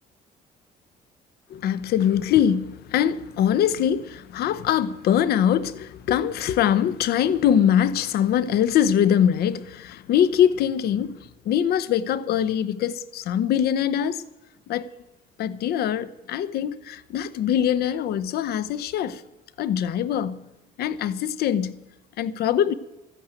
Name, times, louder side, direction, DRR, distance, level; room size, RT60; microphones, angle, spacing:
voice 1, 1.5-14.2 14.7-14.9 15.4-19.2 19.6-20.4 20.8-21.7 22.2-22.7, left 9 dB, 70° left, 0.9 m, -23 dB
13.5 x 9.3 x 9.1 m
cardioid pair, 110°, 17 cm